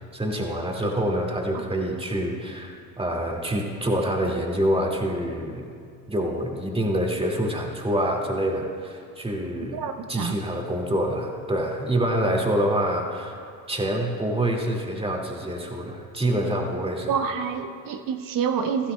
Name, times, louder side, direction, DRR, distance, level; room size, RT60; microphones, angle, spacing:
voice 1, 0.1-5.7 6.1-9.8 10.1-13.4 13.7-17.1, right 1 dB, 10° right, 0 dB, 2.0 m, -26 dB
voice 2, 9.6-10.4 17.1-18.9, right 6 dB, 45° right, 8 dB, 0.9 m, -27 dB
15.5 x 15.0 x 2.2 m, 2.2 s
hypercardioid pair, 65°, 48 cm